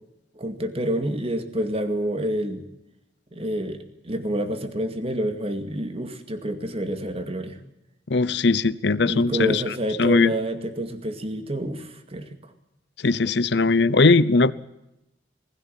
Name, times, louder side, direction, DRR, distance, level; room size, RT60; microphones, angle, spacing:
voice 1, 0.4-2.6 3.3-7.6 9.0-12.5, right 1 dB, 35° right, 8 dB, 2.2 m, -28 dB
voice 2, 8.1-9.6 10.0-10.3 13.0-14.5, left 3 dB, 65° left, 17 dB, 0.8 m, -19 dB
20.0 x 16.0 x 9.1 m, 0.86 s
head